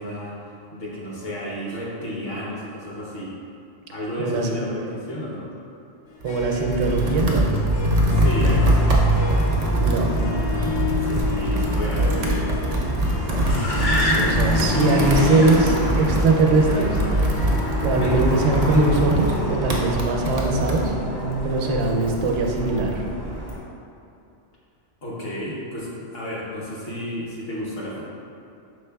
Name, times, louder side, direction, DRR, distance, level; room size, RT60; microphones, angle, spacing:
voice 1, 0.0-3.3 3.9-5.5 8.0-8.9 10.9-12.5 25.0-28.0, equal, 55° left, -6 dB, 1.0 m, -32 dB
voice 2, 4.2-4.5 6.2-7.5 9.8-10.2 14.0-17.0 17.8-20.9 21.4-23.0, right 3 dB, 85° right, 0 dB, 0.9 m, -21 dB
Harp, 6.1-21.4, left 5 dB, 75° left, 1.0 m, -33 dB
Computer keyboard, 6.2-20.8, right 1 dB, 65° right, 0.4 m, -24 dB
Car, 6.8-23.6, equal, 30° left, 0.5 m, -26 dB
5.3 x 3.5 x 2.2 m, 2.6 s
omnidirectional pair, 1.2 m